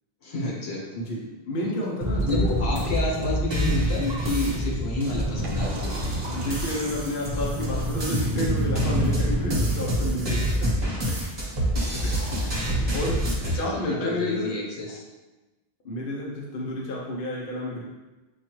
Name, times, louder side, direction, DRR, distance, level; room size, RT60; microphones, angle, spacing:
voice 1, 0.2-0.9 1.6-1.7 2.3-5.9 13.4-15.0, left 2 dB, 75° left, -3 dB, 1.2 m, -29 dB
voice 2, 1.4-2.4 6.3-10.7 11.1-11.2 12.0-12.5 12.9-13.2 13.5-14.6 15.8-17.8, left 1 dB, 60° left, -3 dB, 0.8 m, -30 dB
sound 1, 2.0-13.6, equal, 25° right, 0.9 m, -26 dB
sound 2, 5.4-10.2, right 2 dB, 60° right, 0.7 m, -42 dB
6.2 x 2.4 x 3.0 m, 1.1 s
omnidirectional pair, 1.1 m